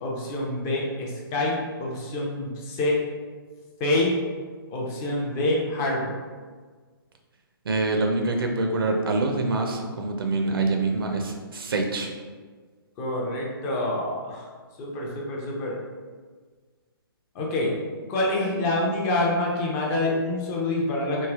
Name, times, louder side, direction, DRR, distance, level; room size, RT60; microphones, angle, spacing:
voice 1, 0.0-3.0 3.8-4.2 4.7-6.1 13.0-14.4 14.8-15.8 17.3-17.7 18.1-21.3, left 1 dB, 20° left, -3 dB, 0.5 m, -26 dB
voice 2, 7.7-12.1, right 2 dB, 70° right, 2 dB, 0.5 m, -25 dB
3.1 x 2.6 x 2.3 m, 1.5 s
hypercardioid pair, 140°, 13 cm